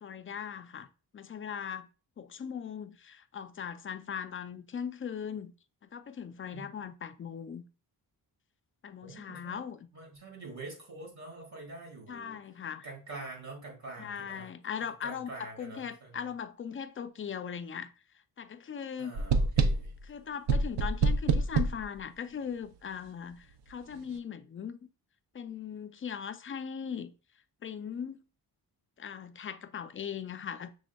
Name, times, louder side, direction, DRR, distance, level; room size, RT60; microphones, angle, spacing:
voice 1, 0.0-0.9 1.1-1.9 2.2-5.5 5.9-7.6 8.8-9.8 12.1-12.9 14.0-17.9 18.4-19.1 20.0-24.8 25.3-27.1 27.6-28.2 29.0-30.7, left 7 dB, 35° left, 0.4 m, -39 dB
voice 2, 6.5-6.9 9.0-9.6 9.9-12.4 12.8-14.5 15.0-16.2 19.0-20.0, right 2 dB, 45° right, 1.9 m, -46 dB
sound 1, 19.1-20.0 20.5-21.8, right 3 dB, 80° right, 0.6 m, -26 dB
6.1 x 3.5 x 2.2 m
wide cardioid pair, 105°, 39 cm